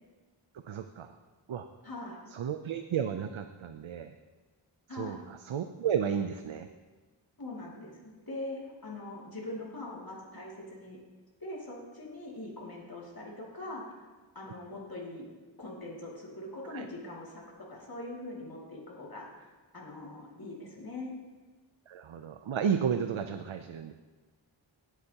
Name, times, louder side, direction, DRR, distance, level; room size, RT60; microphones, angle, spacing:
voice 1, 0.7-1.1 1.5-1.7 2.3-4.1 4.9-6.7 16.7-16.8 21.9-23.9, right 7 dB, 80° right, 8 dB, 0.6 m, -33 dB
voice 2, 1.8-2.2 4.9-5.2 7.4-11.0 11.4-14.0 14.3-15.3 15.6-21.1, left 2 dB, 50° left, -4 dB, 2.5 m, -42 dB
17.5 x 8.2 x 2.9 m, 1.3 s
wide cardioid pair, 65°, 47 cm